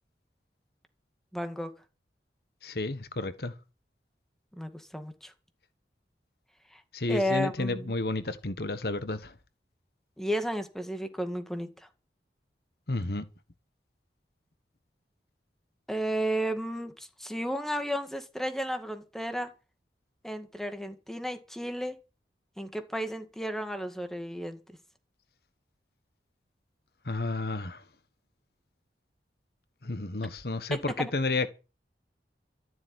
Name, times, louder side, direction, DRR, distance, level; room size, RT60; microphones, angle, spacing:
voice 1, 1.3-1.7 4.5-5.3 6.7-6.8 7.1-7.9 10.2-11.9 15.9-19.5 20.2-22.0 22.6-24.6 30.7-31.1, equal, ahead, 2.0 m, -33 dB
voice 2, 2.6-3.5 6.9-9.3 12.9-13.2 27.1-27.8 29.8-31.5, left 2 dB, 60° left, 1.3 m, -31 dB
13.5 x 7.8 x 9.7 m
head